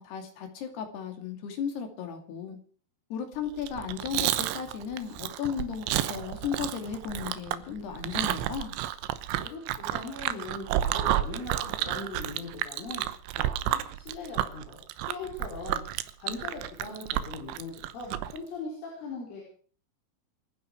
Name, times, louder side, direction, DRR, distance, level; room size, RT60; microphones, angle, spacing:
voice 1, 0.0-2.6 3.1-8.7, left 7 dB, 60° left, 4.6 m, -35 dB
Chewing mastication, 3.6-18.4, right 13 dB, 80° right, 3.2 m, -31 dB
voice 2, 9.3-13.1 13.3-15.8 16.2-19.4, left 3 dB, 85° left, 7.2 m, -40 dB
27.5 x 10.5 x 4.8 m
omnidirectional pair, 5.5 m